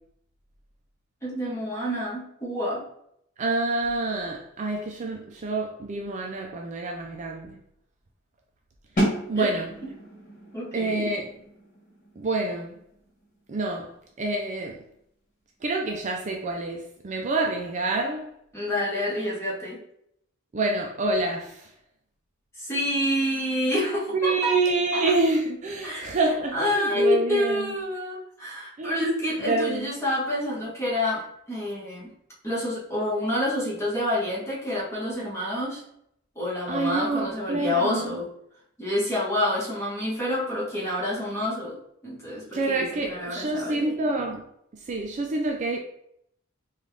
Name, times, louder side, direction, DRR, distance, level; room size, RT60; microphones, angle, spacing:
voice 1, 1.2-2.8 9.3-9.5 10.5-11.1 18.5-19.8 22.6-24.5 24.9-25.0 25.8-26.1 26.5-31.2 31.5-32.1 32.4-35.8 36.3-38.3 38.8-41.8 42.0-43.9, left 1 dB, 15° left, 1.2 m, -28 dB
voice 2, 3.4-7.6 9.3-9.7 10.7-11.3 12.2-12.7 13.5-13.9 14.2-14.8 15.6-18.3 20.5-21.7 24.1-27.8 28.8-29.0 29.4-29.9 36.7-38.2 42.5-44.4 44.9-45.8, right 3 dB, 35° right, 0.4 m, -27 dB
sound 1, 9.0-14.7, equal, 40° left, 1.4 m, -33 dB
3.8 x 2.4 x 3.3 m
head